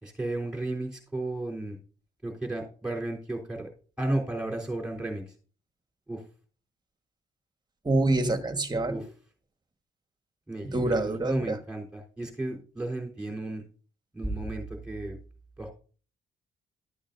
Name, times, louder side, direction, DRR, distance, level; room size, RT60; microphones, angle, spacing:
voice 1, 0.0-1.8 2.2-3.7 4.0-5.3 6.1-6.2 8.9-9.0 10.5-13.6 14.1-15.2 15.6-15.7, right 2 dB, 5° right, 0 dB, 3.6 m, -33 dB
voice 2, 7.8-9.0 10.6-11.6, right 2 dB, 20° right, 8 dB, 1.4 m, -26 dB
12.5 x 8.6 x 2.6 m, 0.39 s
cardioid pair, 90°, 20 cm